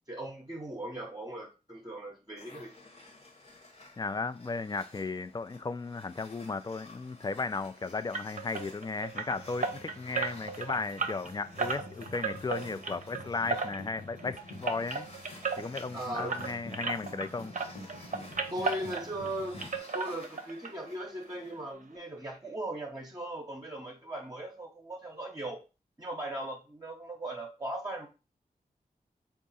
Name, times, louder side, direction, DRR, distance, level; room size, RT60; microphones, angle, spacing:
voice 1, 0.1-2.7 15.9-16.5 18.5-25.6 26.0-28.1, right 1 dB, 20° right, 0.8 m, -38 dB
sound 1, 2.4-21.7, left 2 dB, 40° left, 1.1 m, -54 dB
voice 2, 4.0-15.1 15.6-17.5, left 4 dB, 25° left, 0.4 m, -35 dB
sound 2, 8.1-17.3 17.5-19.3 19.6-20.7 21.0-21.1 21.5-21.6 22.0-22.1, right 4 dB, 50° right, 0.7 m, -35 dB
sound 3, 9.3-19.8, left 2 dB, 65° left, 1.3 m, -49 dB
3.6 x 2.4 x 4.0 m
cardioid pair, 40°, 16 cm